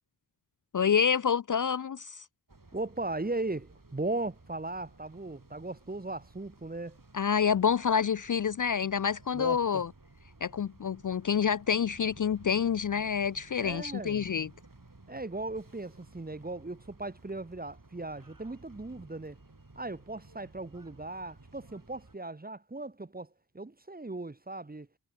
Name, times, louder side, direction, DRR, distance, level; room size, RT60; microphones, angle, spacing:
voice 1, 0.7-2.2 7.1-9.9 10.4-14.5, left 7 dB, 50° left, 0.4 m, -28 dB
sound 1, 2.5-22.2, right 2 dB, 50° right, 6.1 m, -56 dB
voice 2, 2.7-7.0 9.3-9.8 13.6-14.3 15.1-19.4 19.8-24.9, right 2 dB, 20° right, 0.9 m, -37 dB
wide cardioid pair, 40°, 43 cm